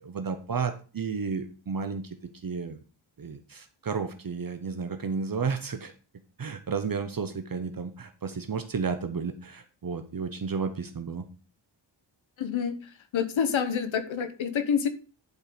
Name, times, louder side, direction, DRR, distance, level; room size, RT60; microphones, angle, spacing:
voice 1, 0.0-2.2 2.4-2.8 3.2-5.9 6.4-11.2, right 5 dB, 45° right, 8 dB, 1.0 m, -32 dB
voice 2, 12.4-12.7 13.1-14.9, left 7 dB, 80° left, 10 dB, 1.1 m, -27 dB
10.5 x 4.6 x 5.1 m, 0.36 s
wide cardioid pair, 120°, 47 cm